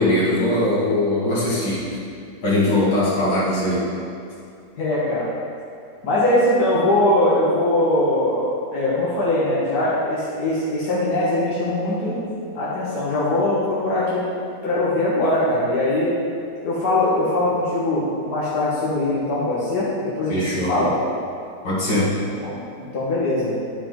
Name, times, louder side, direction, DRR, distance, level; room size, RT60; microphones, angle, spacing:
voice 1, 0.0-1.9 2.4-3.9 20.3-20.7 21.6-22.1, left 1 dB, 85° left, -9 dB, 2.7 m, -20 dB
voice 2, 4.8-5.3 6.0-12.2 12.5-14.2 14.6-16.1 16.6-20.4 20.7-20.9 22.4-22.6 22.9-23.6, left 1 dB, 65° left, -9 dB, 2.0 m, -21 dB
11.0 x 5.1 x 3.8 m, 2.5 s
omnidirectional pair, 1.8 m